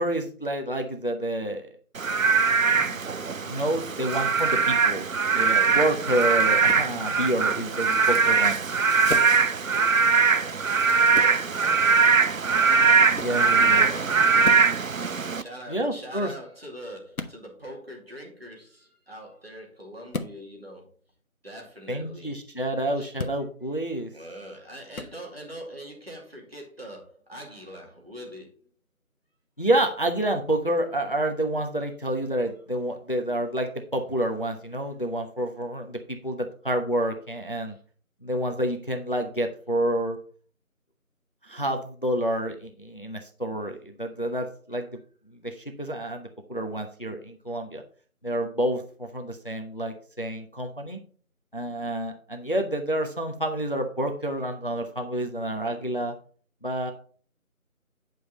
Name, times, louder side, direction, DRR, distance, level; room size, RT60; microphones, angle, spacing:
voice 1, 0.0-1.8 2.7-3.0 3.4-5.1 5.3-8.6 13.2-13.9 15.7-16.3 21.9-24.1 29.6-37.8 38.2-40.2 41.4-45.0 45.3-47.8 48.2-51.0 51.5-56.1 56.6-56.9, right 1 dB, 40° left, 4 dB, 0.9 m, -28 dB
Frog / Rain, 2.0-15.4, right 5 dB, 65° right, 0.6 m, -21 dB
sound 1, 6.6-6.9 9.1-9.4 11.1-11.4 13.1-13.4 14.4-14.7 17.1-17.4 20.1-20.4 23.1-23.4 24.9-25.1, left 3 dB, 75° left, 1.0 m, -33 dB
voice 2, 9.3-12.3 13.2-14.6 15.3-20.9 21.4-22.3 23.0-23.1 24.1-28.7 37.7-37.8, equal, 45° right, 0 dB, 2.6 m, -43 dB
9.3 x 5.2 x 4.2 m, 0.44 s
figure-of-eight pair, 175°, 43 cm